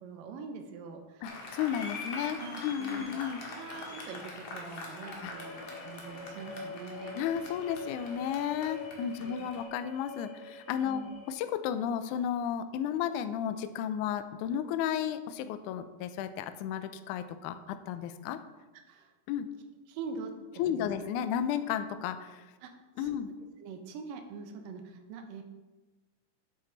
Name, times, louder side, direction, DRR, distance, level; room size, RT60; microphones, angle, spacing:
voice 1, 0.0-1.4 2.3-3.0 3.4-7.1 9.2-9.4 10.8-11.1 18.9-19.1 19.9-20.3 20.7-20.9 22.6-22.7 23.0-23.2 23.6-25.4, right 5 dB, 80° right, 5 dB, 2.6 m, -44 dB
voice 2, 1.2-3.4 5.2-5.4 5.8-5.9 7.2-18.4 19.3-19.5 20.6-22.5 23.0-23.3, left 9 dB, 85° left, 10 dB, 1.8 m, -33 dB
Applause, 1.2-9.6, left 2 dB, 50° left, 2.4 m, -43 dB
sound 1, 5.3-11.3, left 2 dB, 30° left, 1.2 m, -45 dB
9.9 x 8.3 x 4.0 m, 1.2 s
omnidirectional pair, 4.0 m